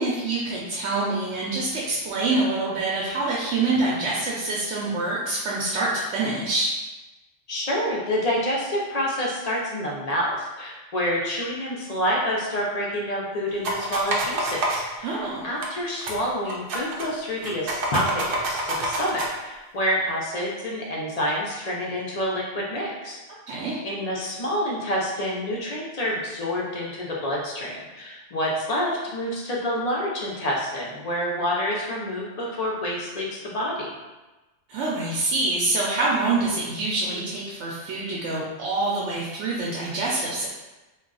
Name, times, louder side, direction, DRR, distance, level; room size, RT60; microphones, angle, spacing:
voice 1, 0.0-6.7 15.0-15.4 23.5-23.8 34.7-40.5, right 2 dB, 90° right, -4 dB, 0.9 m, -26 dB
voice 2, 7.5-23.2 23.8-33.9, equal, 45° left, -3 dB, 0.5 m, -28 dB
sound 1, 13.6-14.8 15.6-15.7 16.0-16.2 16.5-17.1 17.4-19.3, right 2 dB, 60° right, 0.7 m, -27 dB
2.3 x 2.3 x 3.7 m, 1.1 s
omnidirectional pair, 1.2 m